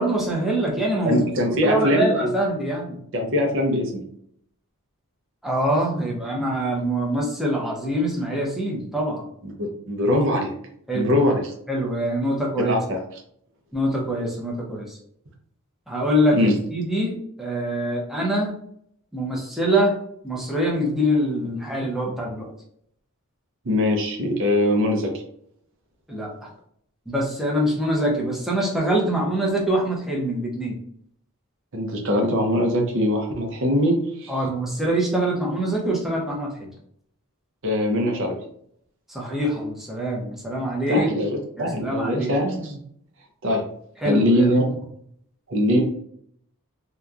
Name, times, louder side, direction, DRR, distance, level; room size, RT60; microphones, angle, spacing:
voice 1, 0.0-1.3 1.6-3.0 5.4-9.3 10.9-11.1 11.7-12.8 13.7-15.0 15.9-18.5 19.1-19.9 20.2-22.5 26.1-26.5 27.1-30.8 34.3-36.7 39.1-41.1 41.6-42.3 44.0-44.5, right 1 dB, ahead, -3 dB, 0.6 m, -24 dB
voice 2, 1.1-2.3 3.1-4.0 9.4-10.5 10.9-11.4 12.7-13.0 16.4-16.5 23.6-25.1 31.7-34.3 37.6-38.4 40.9-42.8 43.4-43.6 44.0-44.7 45.5-45.8, left 1 dB, 60° right, 2 dB, 0.6 m, -22 dB
2.8 x 2.3 x 2.4 m, 0.67 s
head